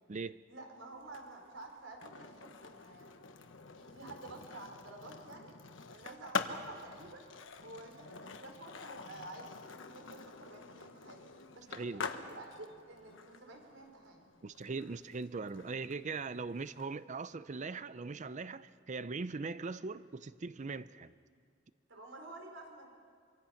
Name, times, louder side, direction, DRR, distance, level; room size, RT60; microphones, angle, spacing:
voice 1, 0.5-3.1 3.8-5.5 5.9-7.2 7.6-14.3 21.9-22.9, right 2 dB, 85° right, 4.5 m, -50 dB
Skateboard, 1.0-16.9, left 4 dB, 80° left, 1.3 m, -46 dB
voice 2, 11.7-12.1 14.4-21.1, right 4 dB, 40° right, 0.5 m, -40 dB
25.0 x 25.0 x 5.8 m
head